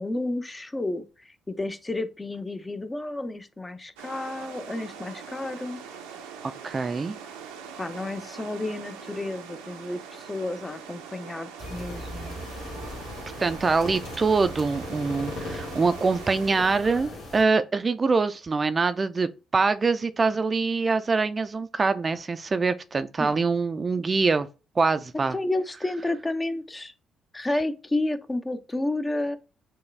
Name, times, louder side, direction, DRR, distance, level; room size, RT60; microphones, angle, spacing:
voice 1, 0.0-5.8 7.8-12.4 23.2-23.3 25.3-26.9 27.3-29.4, left 2 dB, 25° left, 0.7 m, -31 dB
sound 1, 4.0-16.5, right 6 dB, 85° right, 0.6 m, -43 dB
voice 2, 6.4-7.2 13.4-24.5 24.8-25.4, right 4 dB, 35° right, 0.4 m, -24 dB
sound 2, 11.6-17.4, left 1 dB, 75° left, 1.7 m, -38 dB
6.3 x 2.3 x 3.3 m
hypercardioid pair, 50°, 0 cm